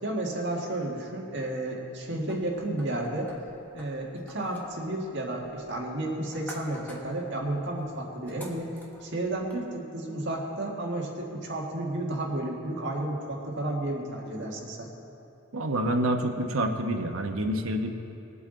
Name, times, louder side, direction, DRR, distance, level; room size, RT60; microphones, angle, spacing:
voice 1, 0.0-3.3 3.7-14.9, right 1 dB, 55° right, -1 dB, 1.7 m, -32 dB
sound 1, 2.3-9.6, left 1 dB, 10° left, 1.2 m, -50 dB
voice 2, 15.5-17.9, right 1 dB, 70° right, 4 dB, 1.0 m, -27 dB
20.0 x 8.1 x 3.9 m, 2.9 s
head